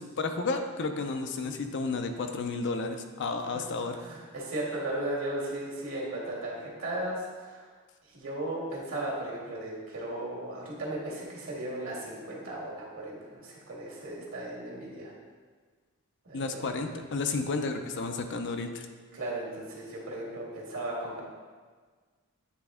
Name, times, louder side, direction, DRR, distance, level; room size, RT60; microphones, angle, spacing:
voice 1, 0.0-3.9 16.3-18.9, left 3 dB, 55° left, 6 dB, 0.5 m, -32 dB
voice 2, 3.9-7.7 8.1-15.1 16.2-16.6 19.1-21.2, right 1 dB, 65° right, -3 dB, 1.7 m, -36 dB
9.1 x 3.4 x 3.6 m, 1.5 s
head